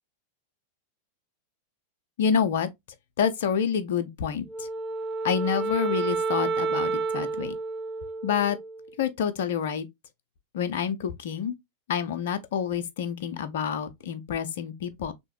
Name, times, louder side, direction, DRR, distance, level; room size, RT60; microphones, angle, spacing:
voice 1, 2.2-2.7 3.2-4.7 5.2-7.6 8.2-8.6 9.0-9.9 10.5-11.5 11.9-15.1, left 7 dB, 55° left, 0.5 m, -28 dB
Wind instrument woodwind instrument, 4.5-8.9, right 4 dB, 15° right, 0.4 m, -30 dB
3.4 x 2.8 x 3.0 m
figure-of-eight pair, 90°, 0 cm